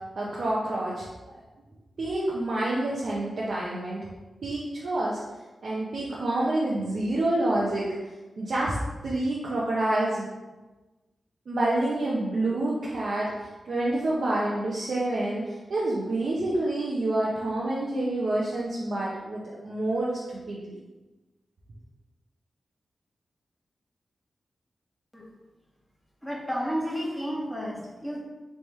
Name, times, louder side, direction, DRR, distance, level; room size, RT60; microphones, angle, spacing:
voice 1, 0.2-1.1 2.0-4.0 4.4-5.2 5.6-7.9 8.4-8.8 9.0-10.3 11.5-20.8, right 1 dB, 70° right, -6 dB, 0.7 m, -28 dB
voice 2, 26.2-28.2, equal, 5° left, -4 dB, 1.3 m, -32 dB
3.4 x 3.2 x 4.2 m, 1.1 s
cardioid pair, 75°, 0 cm